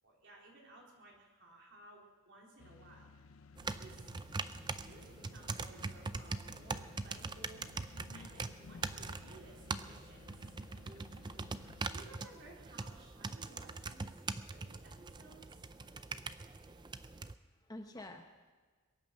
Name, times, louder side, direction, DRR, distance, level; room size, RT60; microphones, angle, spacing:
voice 1, 0.0-3.4 3.8-4.1 4.5-10.6 11.2-11.3 11.9-14.1 14.5-15.7, right 2 dB, 55° right, -2 dB, 3.8 m, -58 dB
sound 1, 2.6-12.1, left 4 dB, 70° left, 0.5 m, -57 dB
sound 2, 3.6-17.3, right 4 dB, 20° right, 0.4 m, -43 dB
voice 2, 16.1-17.0 17.6-18.5, left 1 dB, 15° left, 4 dB, 0.9 m, -52 dB
22.0 x 9.3 x 6.5 m, 1.4 s
head